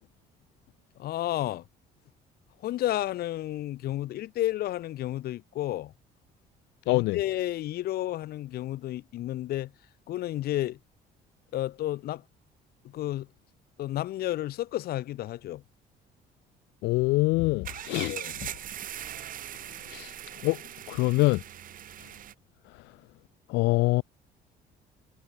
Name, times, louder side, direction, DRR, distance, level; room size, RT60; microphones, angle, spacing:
voice 1, 1.0-1.6 2.6-5.9 6.9-9.7 10.1-10.8 11.5-12.2 12.9-13.3 13.8-15.6 17.9-18.4, left 14 dB, 65° left, 1.0 m, -31 dB
voice 2, 6.9-7.2 16.8-18.2 18.4-18.5 19.9-20.1 20.4-20.6 20.9-21.4 23.5-24.0, left 22 dB, 85° left, 0.4 m, -24 dB
sound 1, 17.6-22.3, right 11 dB, 55° right, 1.4 m, -40 dB
cardioid pair, 110°, 17 cm